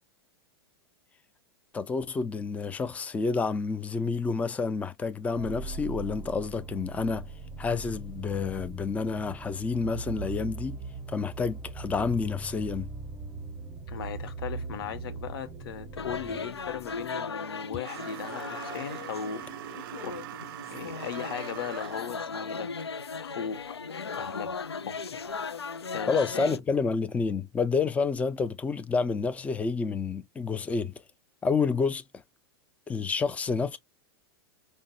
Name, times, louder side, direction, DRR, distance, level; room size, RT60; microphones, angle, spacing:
voice 1, 1.7-7.3 7.6-10.8 11.1-12.9 26.1-31.0 31.4-32.2 32.9-33.8, left 4 dB, 10° left, 0.4 m, -29 dB
sound 1, 5.4-17.2, right 3 dB, 15° right, 0.7 m, -40 dB
voice 2, 13.9-19.4 20.0-22.9 23.2-23.8 24.1-24.5 24.8-25.3 25.9-26.4, left 8 dB, 65° left, 0.8 m, -38 dB
sound 2, 16.0-26.6, left 5 dB, 90° left, 0.4 m, -37 dB
sound 3, 17.8-22.2, right 11 dB, 60° right, 0.5 m, -41 dB
5.2 x 2.1 x 2.6 m
figure-of-eight pair, 100°, 13 cm